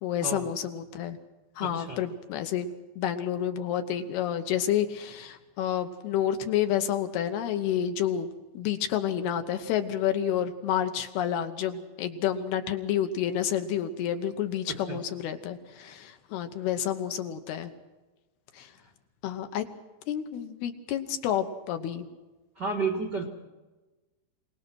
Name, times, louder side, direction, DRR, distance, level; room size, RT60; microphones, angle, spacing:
voice 1, 0.0-1.2 1.6-2.7 3.0-8.3 8.5-17.7 18.5-18.7 19.2-19.7 20.1-22.1, left 10 dB, 75° left, 7 dB, 2.8 m, -29 dB
voice 2, 1.6-2.0 14.7-15.0 22.6-23.2, right 4 dB, 60° right, 2 dB, 1.0 m, -32 dB
26.5 x 19.0 x 6.2 m, 1.2 s
omnidirectional pair, 5.1 m